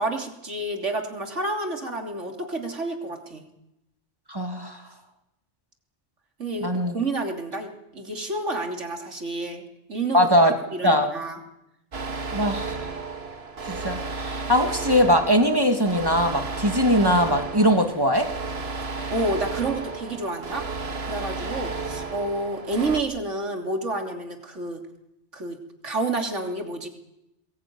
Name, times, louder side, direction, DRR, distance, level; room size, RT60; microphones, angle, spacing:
voice 1, 0.0-3.4 6.4-9.6 9.9-10.3 10.7-11.4 19.1-20.7 21.0-24.8 25.3-25.6 25.8-26.9, right 2 dB, 75° right, 3 dB, 3.3 m, -29 dB
voice 2, 4.3-4.8 6.6-6.9 10.1-10.6 10.8-11.1 12.3-12.8 13.7-18.3 21.4-21.5, equal, 20° right, 4 dB, 2.2 m, -21 dB
sound 1, 11.9-23.0, right 4 dB, 60° right, 1.8 m, -33 dB
23.5 x 20.5 x 9.4 m, 0.91 s
omnidirectional pair, 1.2 m